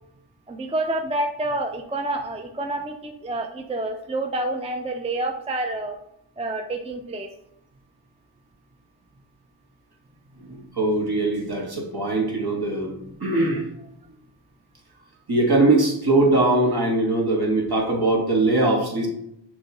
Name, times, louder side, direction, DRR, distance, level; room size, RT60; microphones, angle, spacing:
voice 1, 0.5-6.0 6.4-7.3, right 2 dB, 15° right, 5 dB, 0.4 m, -28 dB
voice 2, 10.4-13.6 15.3-19.1, right 2 dB, 55° right, -1 dB, 1.5 m, -21 dB
6.0 x 3.1 x 2.9 m, 0.76 s
cardioid pair, 40°, 46 cm